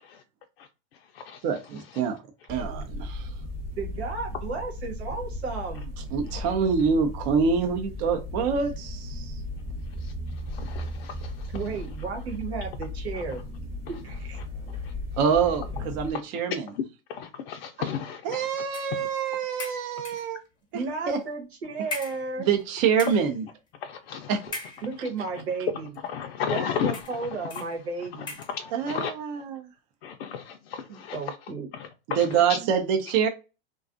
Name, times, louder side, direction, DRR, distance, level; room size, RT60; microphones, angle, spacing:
voice 1, 1.4-2.2 2.5-3.3 6.1-9.4 15.2-16.7 18.2-20.4 20.7-21.2 22.4-23.4 24.3-24.4 28.7-29.6 32.2-33.3, right 6 dB, 45° right, 0.6 m, -26 dB
sound 1, 2.5-16.1, left 1 dB, 20° right, 1.0 m, -36 dB
voice 2, 3.8-5.9 11.5-13.4 14.0-14.4 17.8-17.9 20.7-22.5 24.8-26.0 26.5-28.4 30.9-31.7 32.6-32.7, right 4 dB, 85° right, 1.2 m, -34 dB
voice 3, 10.5-11.5 17.1-18.5 23.8-24.3 26.0-27.0 28.5-29.1 30.0-31.2 31.7-32.2, left 8 dB, 70° left, 0.5 m, -33 dB
sound 2, 18.7-19.0 19.6-20.4 21.2-21.3 21.9-22.7 22.9-23.4 24.5-25.2 25.9-26.1 26.9-27.2 27.5-27.7 28.3-28.6, left 2 dB, 15° left, 0.6 m, -39 dB
2.4 x 2.3 x 2.5 m
supercardioid pair, 130°, 31 cm